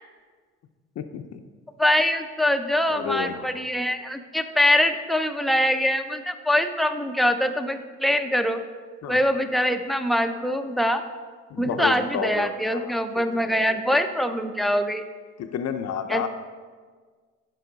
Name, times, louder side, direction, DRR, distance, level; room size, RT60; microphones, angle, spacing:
voice 1, 1.0-1.4 2.9-3.6 9.0-9.2 11.5-14.0 15.4-16.3, left 7 dB, 60° left, 7 dB, 0.6 m, -32 dB
voice 2, 1.8-8.6 9.1-11.0 11.6-15.0 16.1-16.2, left 1 dB, ahead, 7 dB, 0.5 m, -23 dB
11.0 x 4.5 x 3.9 m, 1.5 s
cardioid pair, 90°, 30 cm